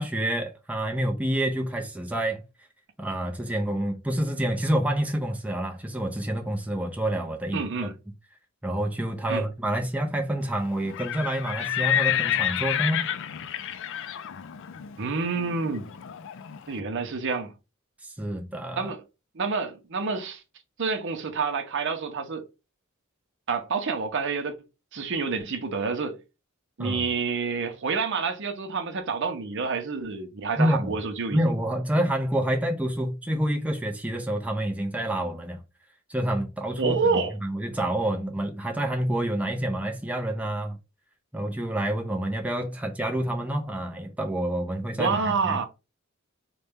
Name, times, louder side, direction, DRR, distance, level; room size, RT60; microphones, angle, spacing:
voice 1, 0.0-2.4 3.0-7.9 8.6-13.1 18.0-18.9 26.8-27.0 30.6-31.0 31.3-35.6 36.1-40.8 41.3-45.6, right 1 dB, 5° right, 0.5 m, -28 dB
voice 2, 7.5-7.9 9.3-9.4 15.0-15.9 16.7-17.5 18.8-19.0 19.3-20.4 20.8-22.4 23.5-24.6 24.9-26.2 26.8-31.4 36.8-37.3 45.0-45.7, right 4 dB, 60° right, 0.7 m, -28 dB
Livestock farm animals working animals, 10.8-16.6, left 11 dB, 60° left, 0.4 m, -29 dB
4.0 x 2.2 x 3.4 m
head